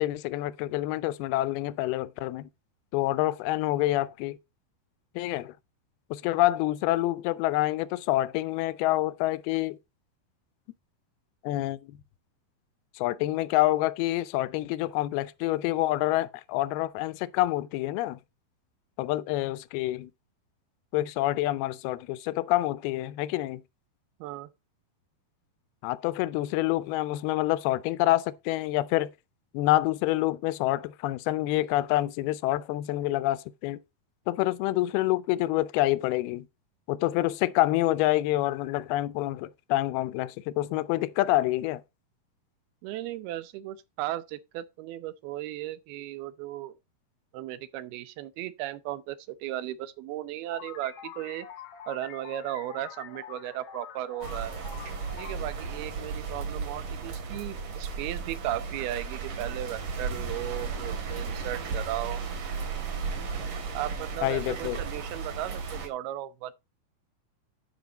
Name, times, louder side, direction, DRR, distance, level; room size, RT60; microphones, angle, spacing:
voice 1, 0.0-2.5 2.9-4.4 5.2-5.5 6.1-9.8 11.4-12.0 13.0-18.2 19.0-20.1 20.9-23.6 25.8-29.1 29.5-33.8 34.3-36.5 36.9-41.8 64.2-64.8, left 16 dB, 85° left, 2.5 m, -27 dB
voice 2, 42.8-46.7 47.3-51.5 51.9-54.5 55.2-62.2 63.7-66.5, right 14 dB, 80° right, 2.7 m, -36 dB
sound 1, 50.5-56.8, left 9 dB, 60° left, 1.6 m, -46 dB
sound 2, 54.2-65.9, right 5 dB, 60° right, 3.3 m, -35 dB
12.0 x 5.3 x 4.0 m
omnidirectional pair, 4.5 m